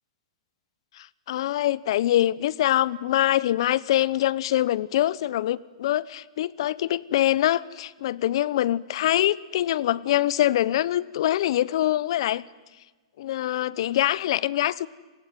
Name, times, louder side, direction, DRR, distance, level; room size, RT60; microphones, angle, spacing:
voice 1, 1.0-12.4 13.2-14.9, left 13 dB, 65° left, 22 dB, 0.9 m, -24 dB
30.0 x 19.5 x 9.3 m, 1.3 s
hypercardioid pair, 130°, 3 cm